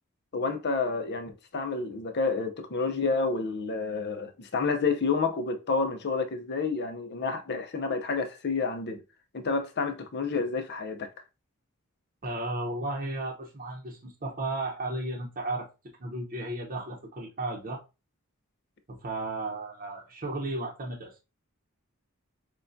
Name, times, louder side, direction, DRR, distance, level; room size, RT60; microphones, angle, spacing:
voice 1, 0.3-9.0 9.3-11.1, left 4 dB, 50° left, 0.6 m, -29 dB
voice 2, 12.2-15.7 16.0-17.8 18.9-21.2, right 2 dB, 40° right, 0.8 m, -34 dB
6.5 x 2.3 x 2.6 m
head